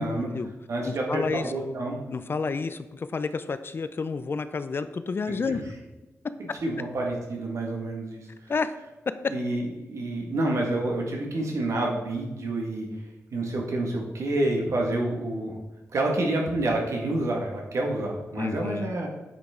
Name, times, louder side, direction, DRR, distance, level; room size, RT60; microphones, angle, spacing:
voice 1, 0.0-0.5 0.8-1.5 2.1-5.6 8.5-8.7 18.3-18.9, left 4 dB, 45° left, 12 dB, 0.5 m, -30 dB
voice 2, 0.7-2.0 6.6-8.3 9.3-12.9 13.3-15.6 15.9-19.1, right 2 dB, 70° right, 0 dB, 1.8 m, -28 dB
9.1 x 6.0 x 3.8 m, 1.1 s
wide cardioid pair, 135°, 5 cm